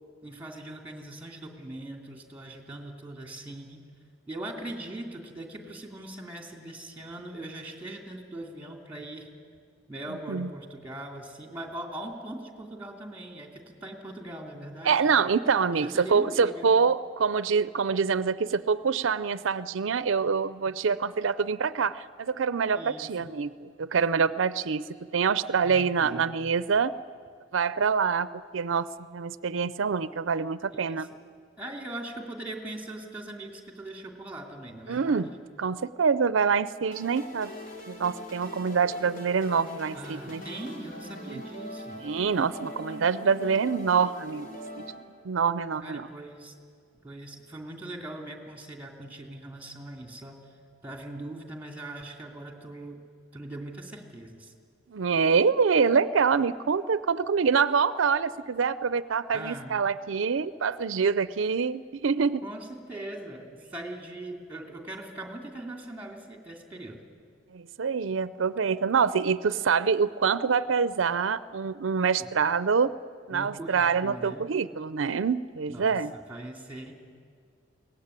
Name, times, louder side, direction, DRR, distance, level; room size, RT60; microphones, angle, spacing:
voice 1, 0.2-3.9 4.3-9.3 9.9-15.1 15.7-16.7 22.7-23.3 25.6-26.5 30.7-31.2 31.6-35.3 39.9-42.1 45.8-46.5 47.0-50.4 50.8-53.0 53.3-54.5 59.3-59.8 62.4-67.0 72.2-72.3 73.3-74.5 75.7-76.9, right 1 dB, 10° right, 3 dB, 2.7 m, -41 dB
voice 2, 14.9-24.8 25.1-26.9 27.5-31.1 34.9-35.3 35.6-37.5 37.9-40.4 41.3-41.4 42.0-44.5 44.8-44.9 45.2-46.1 54.9-62.4 67.5-73.0 73.3-76.1, right 5 dB, 90° right, 15 dB, 0.5 m, -25 dB
sound 1, 36.9-44.9, equal, 45° left, 3.6 m, -42 dB
22.5 x 18.0 x 9.7 m, 2.1 s
head